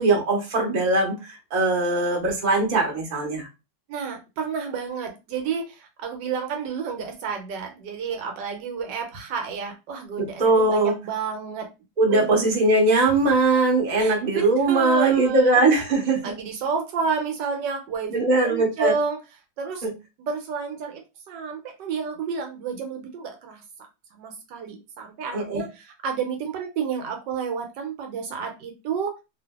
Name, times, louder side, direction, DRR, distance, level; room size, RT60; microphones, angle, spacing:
voice 1, 0.0-3.5 10.2-10.9 12.0-16.3 18.1-18.9 19.8-19.9 25.3-25.6, right 2 dB, 40° right, -1 dB, 0.7 m, -21 dB
voice 2, 3.9-11.7 12.1-12.3 14.0-15.6 16.2-18.1 18.4-19.2 19.6-19.9 20.2-23.6 24.1-29.2, right 5 dB, 80° right, 4 dB, 1.2 m, -30 dB
2.7 x 2.5 x 2.2 m, 0.26 s
omnidirectional pair, 2.0 m